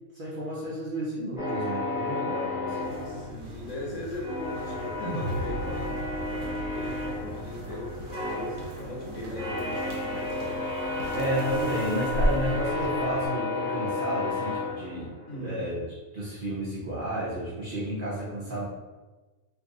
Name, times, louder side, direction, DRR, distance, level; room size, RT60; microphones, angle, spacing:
voice 1, 0.1-2.9 11.1-18.6, equal, 55° right, -6 dB, 0.6 m, -32 dB
sound 1, 1.4-3.8 4.2-15.4, left 2 dB, 5° right, 0.9 m, -32 dB
sound 2, 2.8-13.3, equal, 75° right, 1.1 m, -37 dB
voice 2, 3.0-6.0 6.3-10.6 12.1-12.2 15.3-15.6, left 1 dB, 65° left, -5 dB, 1.0 m, -39 dB
sound 3, 5.0-9.3, right 1 dB, 80° left, 1.3 m, -38 dB
2.6 x 2.5 x 3.7 m, 1.2 s
omnidirectional pair, 1.5 m